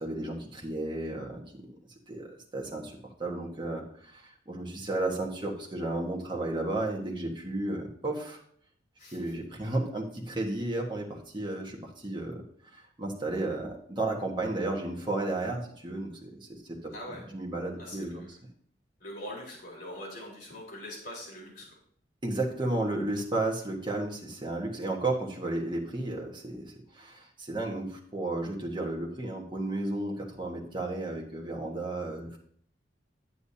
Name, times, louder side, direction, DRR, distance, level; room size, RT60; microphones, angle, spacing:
voice 1, 0.0-1.7 2.1-2.3 2.5-8.4 9.1-12.4 12.7-16.9 17.3-18.2 22.2-32.4, right 2 dB, 25° right, -1 dB, 1.3 m, -33 dB
voice 2, 9.0-9.3 16.9-17.3 17.8-18.3 19.0-21.8, left 1 dB, 50° left, -3 dB, 4.2 m, -43 dB
9.3 x 8.2 x 2.8 m, 0.62 s
head